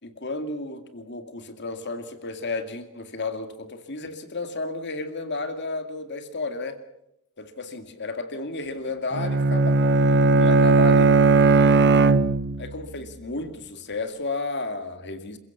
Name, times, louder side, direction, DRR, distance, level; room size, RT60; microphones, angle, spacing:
voice 1, 0.0-6.8 7.4-9.8 10.4-11.1 12.6-15.4, left 3 dB, 50° left, 8 dB, 2.2 m, -32 dB
Bowed string instrument, 9.1-12.8, right 3 dB, 50° right, 0.9 m, -18 dB
28.0 x 15.5 x 7.2 m, 0.83 s
head